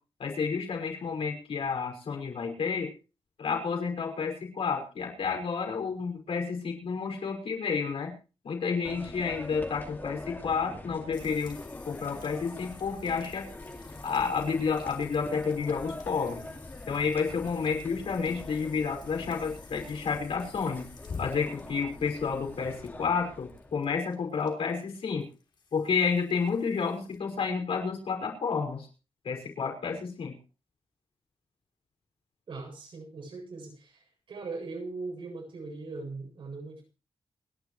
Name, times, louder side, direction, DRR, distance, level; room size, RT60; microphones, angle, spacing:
voice 1, 0.2-2.9 3.4-8.1 8.4-11.6 11.8-13.5 14.0-16.4 16.9-20.9 21.2-25.3 25.7-28.9 29.2-30.4, left 5 dB, 80° left, 1 dB, 5.7 m, -30 dB
sound 1, 8.8-24.0, left 2 dB, 20° left, 2.2 m, -44 dB
sound 2, 11.1-27.2, left 4 dB, 55° left, 3.3 m, -50 dB
voice 2, 32.5-34.0 34.3-36.9, right 3 dB, 65° right, 1 dB, 8.0 m, -40 dB
29.0 x 11.5 x 3.2 m, 0.35 s
wide cardioid pair, 160°, 10 cm